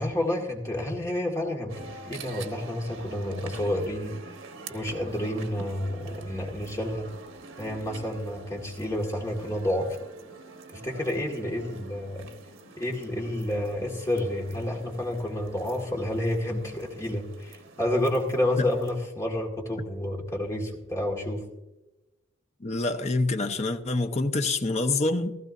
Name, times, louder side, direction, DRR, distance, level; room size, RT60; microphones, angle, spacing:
voice 1, 0.0-4.1 4.7-7.1 7.6-9.9 10.7-12.3 12.8-21.4, left 1 dB, 15° left, 0 dB, 2.0 m, -29 dB
sound 1, 1.7-19.1, right 3 dB, 80° right, 1.3 m, -46 dB
voice 2, 22.6-25.3, left 2 dB, 35° left, 6 dB, 0.9 m, -26 dB
16.0 x 15.0 x 2.7 m, 1.0 s
head